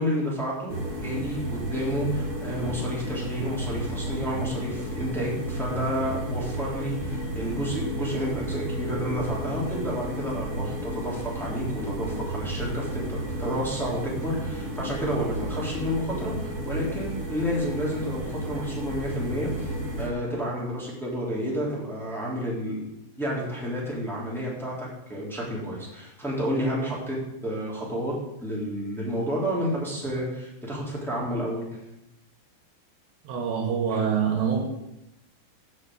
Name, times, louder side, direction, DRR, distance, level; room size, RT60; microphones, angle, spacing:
voice 1, 0.0-22.8 23.2-27.2 27.4-28.1 28.4-31.8 33.9-34.0, equal, ahead, -5 dB, 2.4 m, -30 dB
sound 1, 0.7-20.1, right 1 dB, 35° right, 1.2 m, -32 dB
voice 2, 33.3-34.6, right 7 dB, 75° right, 1 dB, 3.6 m, -25 dB
8.0 x 7.0 x 8.0 m, 0.85 s
omnidirectional pair, 5.1 m